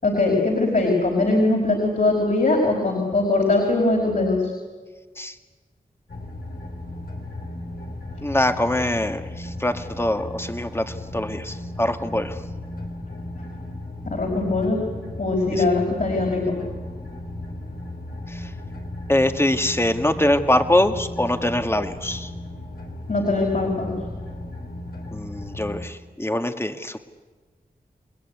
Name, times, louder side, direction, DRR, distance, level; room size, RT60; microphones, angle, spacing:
voice 1, 0.0-4.5 14.0-14.8 15.2-16.4 23.1-23.9, left 2 dB, 60° left, 0 dB, 5.4 m, -21 dB
sound 1, 6.1-25.8, left 1 dB, 75° left, 4.6 m, -35 dB
voice 2, 8.2-12.4 15.5-15.7 18.3-18.5 19.1-22.3 25.1-27.0, left 1 dB, 15° left, 7 dB, 1.8 m, -23 dB
29.0 x 20.5 x 9.7 m, 1.4 s
wide cardioid pair, 70°, 16 cm